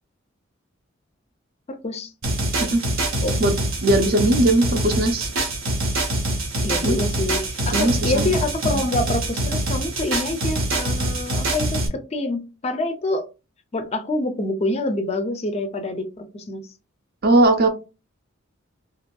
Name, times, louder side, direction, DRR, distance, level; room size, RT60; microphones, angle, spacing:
voice 1, 1.7-2.1 3.2-3.3 6.6-13.3 13.7-16.6, left 2 dB, 30° left, 0.4 m, -26 dB
sound 1, 2.2-11.9, right 1 dB, 70° right, 0.9 m, -24 dB
voice 2, 3.8-5.3 6.8-7.0 7.7-8.4 8.7-8.8 17.2-17.7, right 2 dB, 45° right, 0.5 m, -19 dB
2.9 x 2.5 x 2.2 m
head